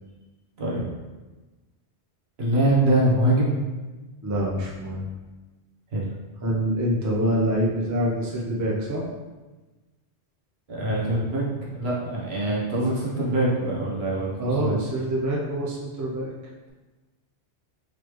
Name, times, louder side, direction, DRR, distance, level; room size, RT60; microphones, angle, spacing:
voice 1, 2.4-3.6 5.9-6.1 10.7-14.8, right 1 dB, 65° right, -5 dB, 1.2 m, -24 dB
voice 2, 4.2-5.0 6.4-9.1 14.4-16.3, right 1 dB, 25° right, -3 dB, 0.4 m, -25 dB
3.9 x 3.2 x 3.0 m, 1.2 s
omnidirectional pair, 1.2 m